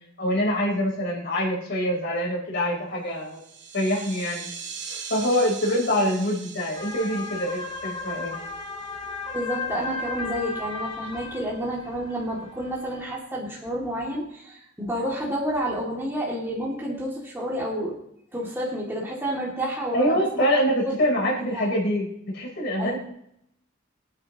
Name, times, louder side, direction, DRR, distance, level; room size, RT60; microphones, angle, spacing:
voice 1, 0.2-3.4 3.7-4.5 5.1-8.4 19.9-23.0, equal, 60° left, -3 dB, 3.8 m, -25 dB
sound 1, 3.2-9.3, right 6 dB, 60° right, 2.1 m, -41 dB
sound 2, 6.8-13.2, left 3 dB, 25° left, 1.6 m, -35 dB
voice 2, 9.3-18.0 18.3-20.4 20.8-21.3 21.5-21.7 22.8-23.0, equal, 10° right, -5 dB, 2.3 m, -30 dB
23.0 x 9.5 x 3.0 m, 0.76 s
head